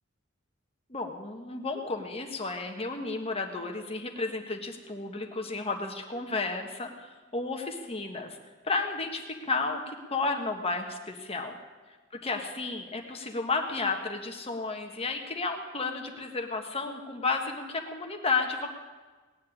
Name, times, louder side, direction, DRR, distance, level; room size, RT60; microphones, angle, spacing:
voice 1, 0.9-8.4 8.6-11.6 12.2-18.7, left 3 dB, 30° left, 4 dB, 1.5 m, -32 dB
19.0 x 7.6 x 9.8 m, 1.3 s
head